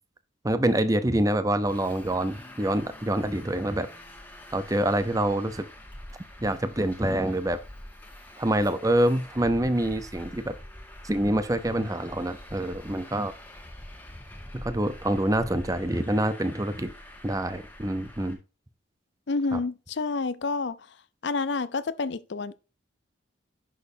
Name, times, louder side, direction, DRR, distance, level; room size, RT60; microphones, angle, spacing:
voice 1, 0.4-3.9 4.5-5.7 6.4-7.6 8.4-10.6 11.0-13.3 14.5-16.9 17.2-18.4 19.5-19.6, right 1 dB, 20° right, 0.7 m, -26 dB
Traffic noise roadway noise, 1.6-18.3, left 1 dB, 10° left, 1.6 m, -45 dB
voice 2, 19.3-20.8 21.2-22.6, left 3 dB, 65° left, 0.6 m, -29 dB
10.5 x 6.3 x 2.7 m
head